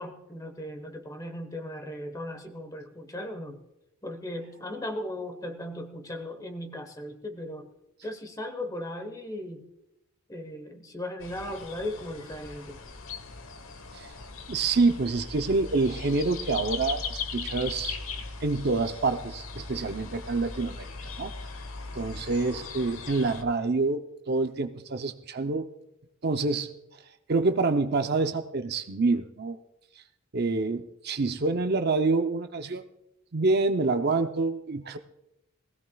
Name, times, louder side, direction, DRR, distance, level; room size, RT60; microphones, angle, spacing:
voice 1, 0.0-3.6 4.0-7.7 8.0-9.7 10.3-12.8, left 1 dB, 15° left, 7 dB, 1.2 m, -37 dB
sound 1, 11.2-23.4, left 4 dB, 75° left, 1.1 m, -39 dB
voice 2, 14.5-18.0 18.4-20.9 21.2-21.3 21.9-24.0 24.3-25.7 26.2-26.7 27.3-29.6 30.3-32.9 33.3-35.0, right 3 dB, 50° right, 8 dB, 0.6 m, -27 dB
20.0 x 16.0 x 2.3 m, 0.88 s
head